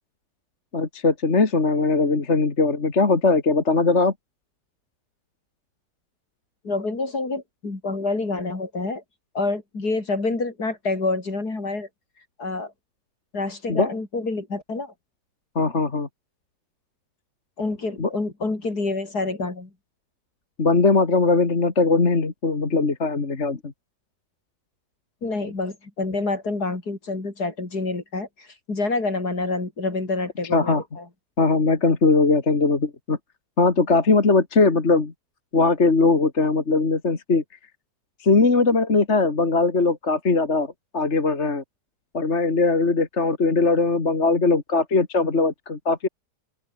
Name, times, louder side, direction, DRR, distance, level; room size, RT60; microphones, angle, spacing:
voice 1, 0.7-4.1 13.7-13.9 15.6-16.1 18.0-18.1 20.6-23.7 30.5-30.8 31.4-33.2 33.6-35.1 35.5-37.4 38.2-41.6 42.1-46.1, left 3 dB, 40° left, 2.5 m, -20 dB
voice 2, 6.6-9.0 9.3-11.9 12.4-12.7 13.3-14.9 17.6-19.7 25.2-31.0, left 3 dB, 60° left, 5.0 m, -27 dB
open air
omnidirectional pair, 1.9 m